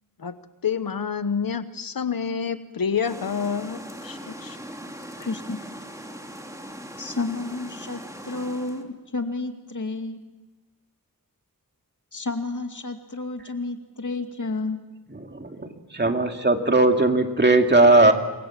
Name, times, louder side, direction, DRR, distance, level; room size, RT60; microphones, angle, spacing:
voice 1, 0.6-4.6, left 6 dB, 80° left, 12 dB, 1.0 m, -28 dB
sound 1, 3.1-8.8, equal, 10° right, 2.6 m, -40 dB
voice 2, 5.2-5.6 7.0-10.2 12.1-14.8, left 3 dB, 60° left, 5 dB, 2.5 m, -31 dB
voice 3, 15.1-18.1, right 2 dB, 30° right, 4 dB, 2.4 m, -19 dB
27.5 x 22.5 x 7.4 m, 1.2 s
wide cardioid pair, 75°, 35 cm